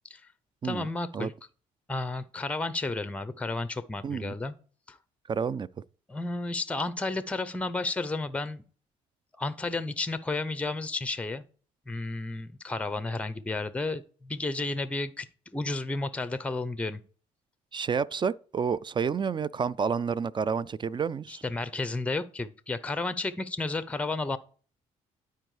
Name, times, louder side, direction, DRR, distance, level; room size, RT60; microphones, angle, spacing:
voice 1, 0.6-1.3 1.9-4.5 4.9-5.0 6.1-8.6 9.4-11.4 11.9-17.0 21.3-24.4, left 3 dB, 10° left, 0.6 m, -32 dB
voice 2, 4.0-4.3 5.3-5.7 17.7-21.4, right 6 dB, 30° right, 0.3 m, -29 dB
12.0 x 4.6 x 3.2 m
hypercardioid pair, 55°, 16 cm